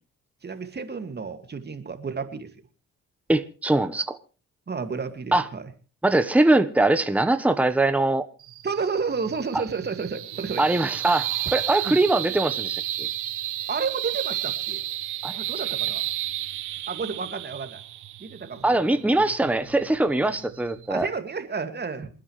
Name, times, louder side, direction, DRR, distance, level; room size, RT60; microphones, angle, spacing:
voice 1, 0.4-2.5 4.7-5.7 8.6-10.6 11.8-12.0 13.7-14.8 15.3-16.1 16.9-17.8 18.2-18.8 20.2-20.3 20.9-22.1, right 5 dB, 35° right, 2.2 m, -31 dB
voice 2, 3.3-4.2 5.3-5.4 6.0-8.2 9.5-9.6 10.6-13.1 15.2-15.3 18.6-21.1, right 2 dB, 5° right, 1.1 m, -22 dB
sound 1, 8.4-21.0, right 13 dB, 80° right, 1.3 m, -32 dB
27.5 x 9.8 x 3.2 m
cardioid pair, 90°, 30 cm